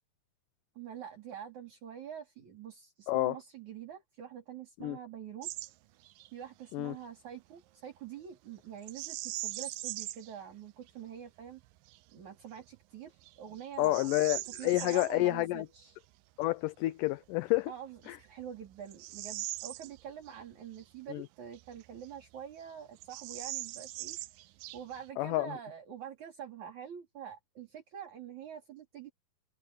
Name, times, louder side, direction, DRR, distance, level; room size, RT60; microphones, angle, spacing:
voice 1, 0.7-5.5 6.3-11.6 12.1-16.0 17.7-24.2 24.7-29.1, right 9 dB, 55° right, 5.0 m, -46 dB
Bird vocalization bird call bird song, 5.4-5.7 6.0-6.3 8.8-10.3 10.9-11.0 11.6-12.0 12.6-12.7 13.2-15.1 17.2-17.3 18.0-20.4 20.8-20.9 21.5-22.3 22.6-22.7 23.0-25.1, right 18 dB, 85° right, 2.3 m, -41 dB
voice 2, 13.8-15.7 16.4-17.7 18.1-18.2 21.1-21.3 25.2-25.5, left 18 dB, 80° left, 2.0 m, -29 dB
omnidirectional pair, 4.1 m